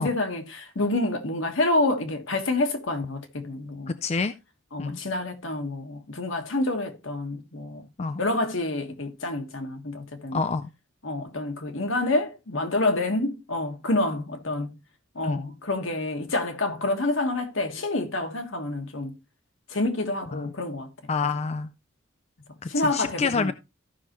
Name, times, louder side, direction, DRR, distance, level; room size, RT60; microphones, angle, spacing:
voice 1, 0.0-4.0 4.7-7.8 8.2-10.4 11.0-14.8 15.1-19.2 19.7-20.9 22.7-23.5, left 2 dB, 70° left, 1.5 m, -28 dB
voice 2, 4.0-4.3 4.8-5.0 8.0-8.2 10.3-10.7 15.2-15.4 20.3-20.5 21.1-21.7 22.6-23.5, left 4 dB, 30° left, 0.4 m, -27 dB
14.5 x 5.7 x 3.0 m
head